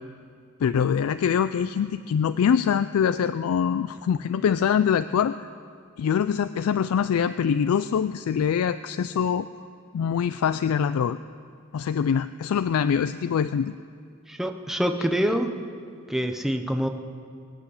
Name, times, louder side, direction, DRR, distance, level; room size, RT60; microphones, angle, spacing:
voice 1, 0.6-5.5 6.0-9.5 9.9-11.2 11.7-13.7, left 7 dB, 85° left, 13 dB, 0.3 m, -24 dB
voice 2, 14.3-15.5 16.1-16.9, equal, ahead, 5 dB, 0.8 m, -25 dB
23.5 x 8.2 x 6.5 m, 2.3 s
head